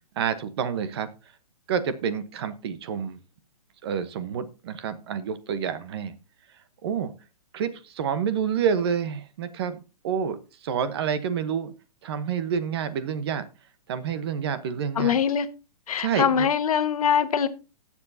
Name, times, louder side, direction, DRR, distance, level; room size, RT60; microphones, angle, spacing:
voice 1, 0.2-1.1 1.7-3.2 3.8-6.1 6.8-7.1 7.5-9.8 10.0-11.7 12.0-13.5 13.9-15.2 16.0-16.5, right 7 dB, 40° right, 13 dB, 1.0 m, -28 dB
voice 2, 15.0-15.5 15.9-17.5, left 8 dB, 60° left, 11 dB, 1.3 m, -23 dB
17.5 x 7.3 x 2.7 m, 0.30 s
hypercardioid pair, 165°, 20 cm